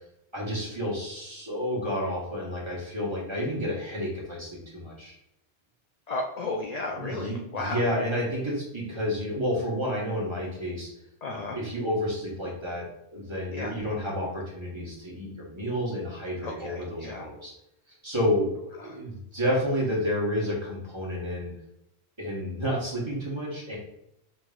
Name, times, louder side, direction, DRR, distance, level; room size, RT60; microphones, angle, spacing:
voice 1, 0.3-5.1 6.9-10.9 11.3-12.9 13.1-17.5 18.0-21.5 22.2-23.8, equal, 25° right, -4 dB, 1.2 m, -30 dB
voice 2, 6.1-7.8 11.2-11.6 13.5-13.8 16.4-17.2 18.8-19.0, left 3 dB, 55° left, 0 dB, 0.4 m, -34 dB
5.3 x 3.0 x 2.4 m, 0.82 s
omnidirectional pair, 1.1 m